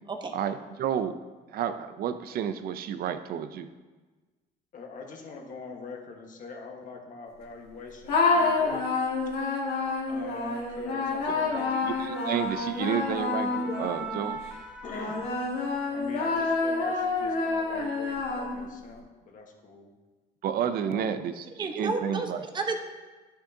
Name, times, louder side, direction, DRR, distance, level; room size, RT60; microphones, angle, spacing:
voice 1, 0.3-1.2 1.5-3.7 11.3-11.4 11.8-14.4 20.4-22.4, right 8 dB, 65° right, 11 dB, 0.6 m, -31 dB
voice 2, 4.7-8.9 10.1-11.7 14.8-15.3 15.9-19.9 20.7-21.2, left 4 dB, 50° left, 2 dB, 1.5 m, -43 dB
sound 1, 8.1-14.3 14.9-18.8, left 3 dB, 70° left, 2.3 m, -28 dB
sound 2, 11.2-16.0 16.4-16.6, right 4 dB, 5° right, 0.7 m, -43 dB
voice 3, 21.6-22.8, right 3 dB, 25° right, 4 dB, 1.0 m, -31 dB
11.5 x 6.1 x 2.8 m, 1.3 s
cardioid pair, 110°, 17 cm